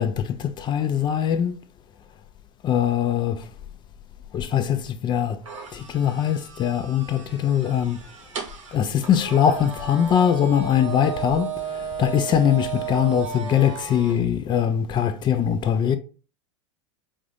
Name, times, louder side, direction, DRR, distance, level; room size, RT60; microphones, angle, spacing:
voice 1, 0.0-1.6 2.6-3.5 4.3-5.4 5.7-8.0 8.7-11.5 11.7-16.0, left 9 dB, 30° left, 0.6 m, -22 dB
sound 1, 5.4-14.2, right 7 dB, 90° right, 1.2 m, -34 dB
5.2 x 2.5 x 3.4 m
hypercardioid pair, 100°, 16 cm